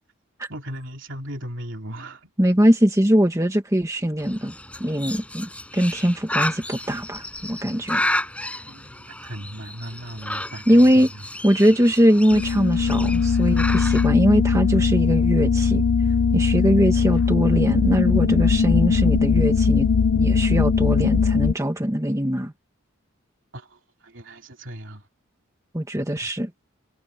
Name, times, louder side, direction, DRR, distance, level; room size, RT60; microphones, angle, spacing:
voice 1, 0.5-2.3 8.6-11.2 23.5-25.1 26.2-26.3, equal, 60° right, 3.5 m, -37 dB
voice 2, 2.4-4.5 4.8-8.1 10.7-11.1 11.4-15.8 16.3-19.9 20.1-22.5 25.7-26.5, equal, 15° right, 1.6 m, -21 dB
Bird, 4.2-14.1, left 1 dB, 5° left, 6.7 m, -32 dB
High Pitched Drone, 12.3-21.5, left 5 dB, 70° left, 0.5 m, -20 dB
head